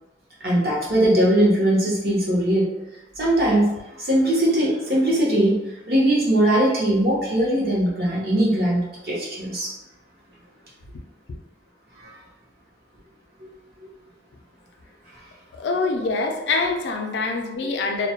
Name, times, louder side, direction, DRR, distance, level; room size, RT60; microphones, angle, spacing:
voice 1, 0.4-2.7 3.2-3.7 4.0-5.6 5.9-9.7 12.0-12.1 17.6-17.7, right 1 dB, 60° right, -4 dB, 0.7 m, -20 dB
voice 2, 15.5-18.1, left 3 dB, 80° left, 3 dB, 0.4 m, -25 dB
2.1 x 2.0 x 2.8 m, 0.98 s
head